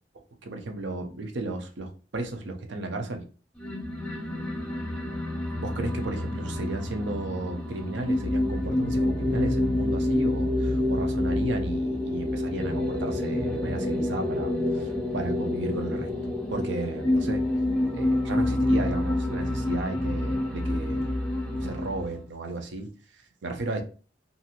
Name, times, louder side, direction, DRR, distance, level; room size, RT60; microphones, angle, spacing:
voice 1, 0.4-3.2 5.5-17.4 17.9-21.0 21.5-22.9 23.4-23.8, right 2 dB, 70° right, 0.6 m, -34 dB
sound 1, 3.6-22.2, left 1 dB, 5° left, 0.6 m, -28 dB
2.6 x 2.4 x 2.8 m
head